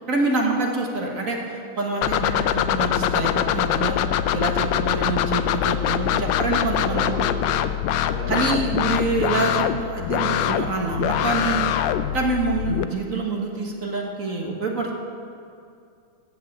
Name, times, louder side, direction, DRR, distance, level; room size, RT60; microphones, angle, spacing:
voice 1, 0.1-4.0 4.3-7.1 8.3-11.7 12.1-14.9, right 3 dB, 45° right, 0 dB, 1.7 m, -26 dB
sound 1, 2.0-12.8, left 10 dB, 75° left, 1.2 m, -23 dB
voice 2, 6.7-7.5 8.1-8.5, left 1 dB, 50° left, -8 dB, 4.6 m, -33 dB
15.5 x 6.0 x 8.6 m, 2.4 s
omnidirectional pair, 2.2 m